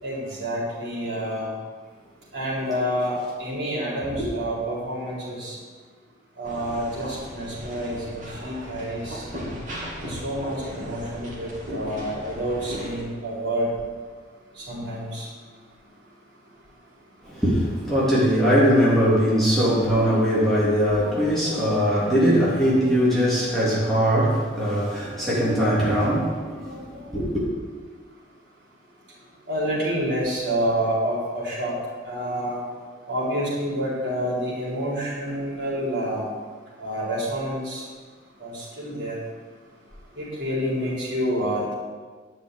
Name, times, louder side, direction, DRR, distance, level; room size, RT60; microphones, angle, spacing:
voice 1, 0.0-1.5 2.3-5.6 6.4-9.3 10.1-13.7 14.6-15.3 29.5-31.7 32.0-32.6 33.1-36.3 36.8-37.8 38.4-39.2 40.2-41.8, equal, 65° right, -5 dB, 4.3 m, -28 dB
sound 1, 6.4-13.0, equal, 40° right, 3.0 m, -36 dB
voice 2, 17.2-27.4, equal, ahead, -9 dB, 3.2 m, -21 dB
10.5 x 6.5 x 8.3 m, 1.5 s
head